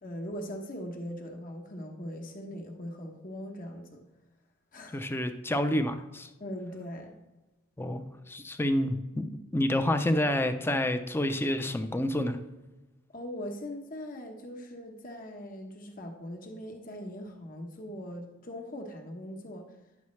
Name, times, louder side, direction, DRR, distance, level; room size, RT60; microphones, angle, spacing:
voice 1, 0.0-4.0 4.7-5.1 6.4-7.1 13.1-19.7, equal, 40° left, 2 dB, 1.0 m, -40 dB
voice 2, 4.9-6.3 7.8-9.3 9.5-12.4, left 1 dB, 10° left, 9 dB, 0.5 m, -28 dB
10.5 x 7.1 x 3.2 m, 1.1 s
head